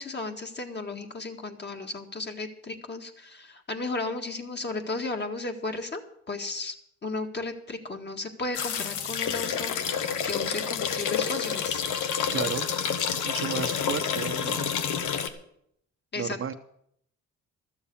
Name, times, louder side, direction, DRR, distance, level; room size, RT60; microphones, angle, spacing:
voice 1, 0.0-6.0 6.3-6.7 7.0-11.8 16.1-16.5, left 3 dB, 35° left, 4 dB, 1.9 m, -34 dB
sound 1, 8.5-15.3, left 7 dB, 85° left, 1.2 m, -29 dB
voice 2, 12.3-12.7 13.1-14.7 16.2-16.5, right 7 dB, 45° right, 8 dB, 0.9 m, -33 dB
13.0 x 7.2 x 8.5 m, 0.71 s
cardioid pair, 90°, 30 cm